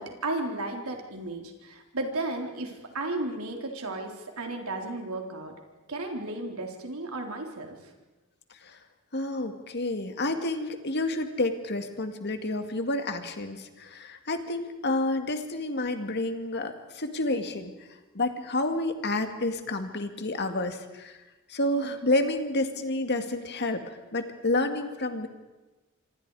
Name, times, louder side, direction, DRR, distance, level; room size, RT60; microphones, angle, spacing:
voice 1, 0.0-5.5 5.9-7.9, right 2 dB, 80° right, 2 dB, 3.8 m, -34 dB
voice 2, 9.1-17.7 18.1-21.2 21.5-25.3, left 2 dB, 50° left, 7 dB, 2.1 m, -29 dB
27.0 x 26.0 x 4.9 m, 1.1 s
head